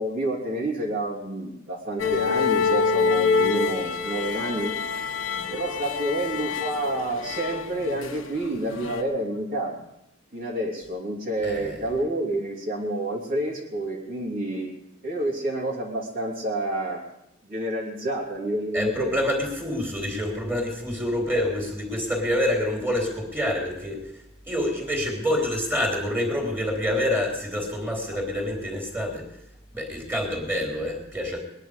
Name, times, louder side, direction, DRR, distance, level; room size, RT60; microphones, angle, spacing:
voice 1, 0.0-4.7 5.5-9.9 10.3-14.7 15.0-17.0 17.4-19.3, right 1 dB, 45° right, -4 dB, 3.1 m, -29 dB
sound 1, 2.0-8.4 8.7-9.0, left 5 dB, 75° left, 1.4 m, -26 dB
voice 2, 11.4-11.8 18.7-29.3 29.7-31.4, left 1 dB, 10° right, 0 dB, 3.7 m, -27 dB
21.0 x 10.5 x 5.1 m, 0.82 s
head